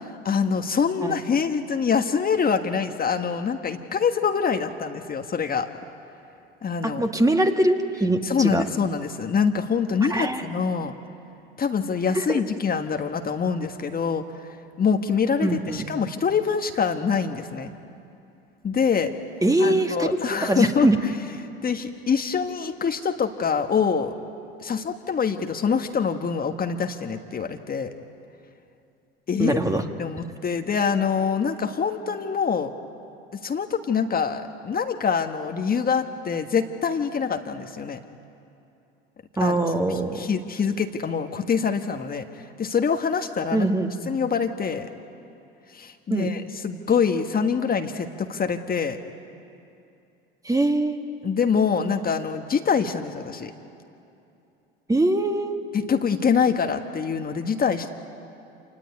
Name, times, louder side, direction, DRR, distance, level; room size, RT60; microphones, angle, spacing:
voice 1, 0.0-5.7 6.6-7.0 8.2-10.9 11.6-14.2 14.8-17.7 18.6-19.1 19.6-20.9 21.6-24.1 24.6-27.9 29.3-29.6 30.0-32.7 33.3-38.0 39.4-39.5 39.9-42.2 42.6-43.7 44.1-44.9 45.7-49.0 51.2-53.5 55.7-57.9, left 6 dB, 30° left, 5 dB, 1.6 m, -25 dB
voice 2, 6.8-8.6 10.1-10.4 12.1-12.4 15.4-15.9 19.4-20.1 20.4-21.0 29.4-29.8 39.4-40.3 43.5-44.1 46.1-46.3 50.4-51.0 54.9-55.6, right 1 dB, 10° right, 5 dB, 2.0 m, -22 dB
27.0 x 19.0 x 9.5 m, 2.7 s
hypercardioid pair, 75°, 29 cm